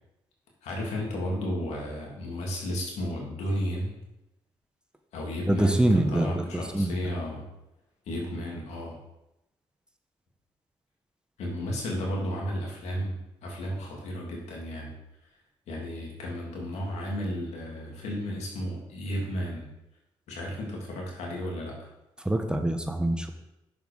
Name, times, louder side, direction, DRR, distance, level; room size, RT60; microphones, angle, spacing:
voice 1, 0.6-3.9 5.1-7.5 8.1-9.0 11.4-14.9 15.7-19.7 20.3-21.9, equal, 80° left, -2 dB, 2.6 m, -33 dB
voice 2, 5.5-6.9 22.2-23.3, right 1 dB, 10° right, 6 dB, 1.0 m, -25 dB
6.9 x 5.7 x 5.1 m, 0.91 s
supercardioid pair, 65°, 11 cm